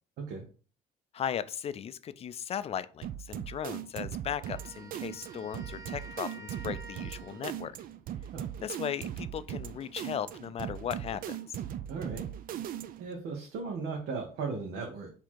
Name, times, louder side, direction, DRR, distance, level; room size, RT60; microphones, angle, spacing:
voice 1, 1.1-7.8 8.6-11.6, left 9 dB, 35° left, 0.3 m, -37 dB
sound 1, 3.0-13.1, right 11 dB, 55° right, 0.4 m, -39 dB
Wind instrument woodwind instrument, 4.4-7.8, right 1 dB, 20° right, 0.9 m, -50 dB
voice 2, 11.9-12.2 13.0-15.1, right 4 dB, 75° right, 1.0 m, -36 dB
4.2 x 2.8 x 4.5 m
cardioid pair, 110°, 17 cm